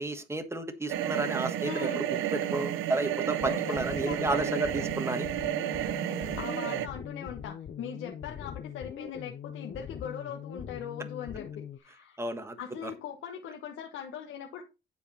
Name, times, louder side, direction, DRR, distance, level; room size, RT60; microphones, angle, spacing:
voice 1, 0.0-2.0 2.3-5.3 12.2-12.6 12.8-12.9, right 2 dB, 15° right, 8 dB, 1.3 m, -32 dB
sound 1, 0.9-6.9, right 11 dB, 90° right, 0.7 m, -31 dB
voice 2, 1.6-2.0 3.4-4.4 6.1-12.2 12.6-14.6, left 8 dB, 85° left, 2 dB, 1.3 m, -40 dB
sound 2, 3.4-11.8, left 8 dB, 45° left, 0.8 m, -42 dB
10.5 x 4.6 x 4.3 m, 0.28 s
cardioid pair, 90°, 20 cm